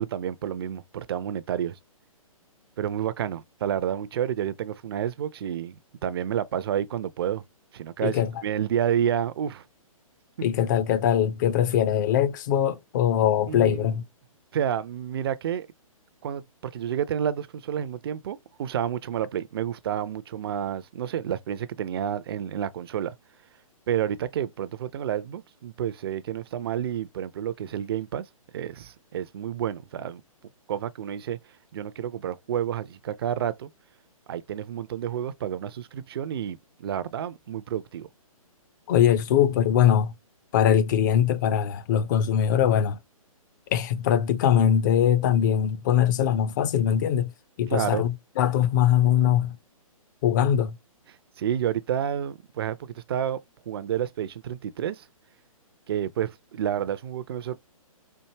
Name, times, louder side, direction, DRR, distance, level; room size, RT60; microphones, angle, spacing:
voice 1, 0.0-1.8 2.8-7.4 7.7-9.6 13.5-13.9 14.5-15.7 16.2-23.1 23.9-28.3 28.5-30.2 30.7-31.4 31.7-33.7 34.3-38.1 47.7-48.1 51.4-53.4 53.7-55.1 55.9-57.6, right 9 dB, 40° right, 0.4 m, -30 dB
voice 2, 8.0-8.4 10.4-14.0 38.9-40.1 40.5-43.0 43.7-47.3 47.6-49.6 50.2-50.8, left 9 dB, 35° left, 0.5 m, -22 dB
4.6 x 2.6 x 2.8 m
figure-of-eight pair, 130°, 18 cm